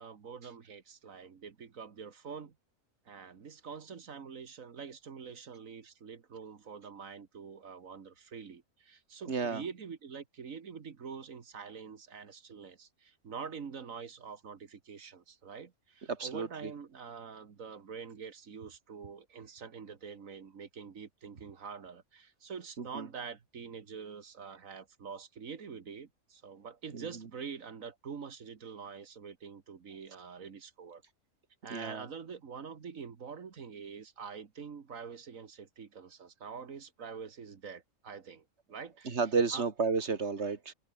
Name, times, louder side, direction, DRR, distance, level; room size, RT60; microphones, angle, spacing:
voice 1, 0.0-2.6 3.1-31.0 31.6-39.2 39.5-39.7, right 6 dB, 70° right, 2.0 m, -45 dB
voice 2, 9.3-9.6 16.1-16.7 22.8-23.1 26.9-27.1 31.7-32.1 39.1-40.7, right 5 dB, 50° right, 2.2 m, -32 dB
open air
omnidirectional pair, 1.5 m